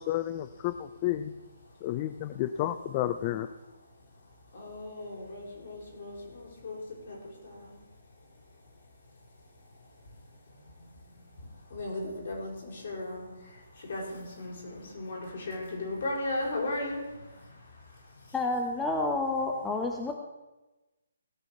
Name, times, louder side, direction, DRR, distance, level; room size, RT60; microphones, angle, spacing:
voice 1, 0.0-1.3 1.8-3.5, left 13 dB, 30° left, 11 dB, 0.5 m, -31 dB
voice 2, 3.8-18.4, left 2 dB, 55° left, -2 dB, 5.5 m, -39 dB
voice 3, 18.3-20.1, left 2 dB, 10° left, 2 dB, 1.0 m, -29 dB
17.0 x 6.2 x 6.8 m, 1.1 s
figure-of-eight pair, 145°, 0 cm